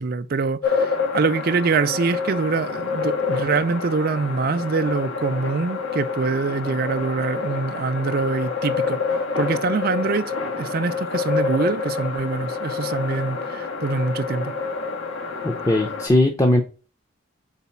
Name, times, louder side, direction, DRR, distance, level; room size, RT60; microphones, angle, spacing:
voice 1, 0.0-9.0 9.4-14.5, right 4 dB, 45° right, 0.4 m, -24 dB
sound 1, 0.6-16.1, left 4 dB, 85° left, 1.4 m, -27 dB
voice 2, 15.4-16.6, left 1 dB, 15° left, 0.5 m, -19 dB
4.5 x 4.1 x 5.7 m
head